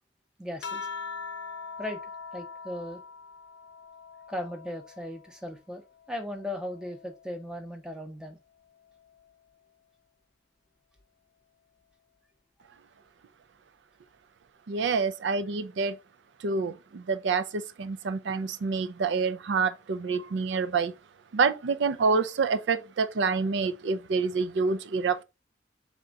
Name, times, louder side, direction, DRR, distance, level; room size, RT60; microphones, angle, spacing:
voice 1, 0.4-0.9 1.8-2.0 2.3-3.0 4.3-8.4, left 1 dB, 5° right, 0.7 m, -37 dB
sound 1, 0.6-5.4 5.9-7.6 8.8-9.3, left 5 dB, 75° left, 0.6 m, -43 dB
voice 2, 14.7-16.0 16.4-20.9 21.3-25.2, right 4 dB, 75° right, 0.4 m, -27 dB
3.7 x 3.5 x 3.9 m
head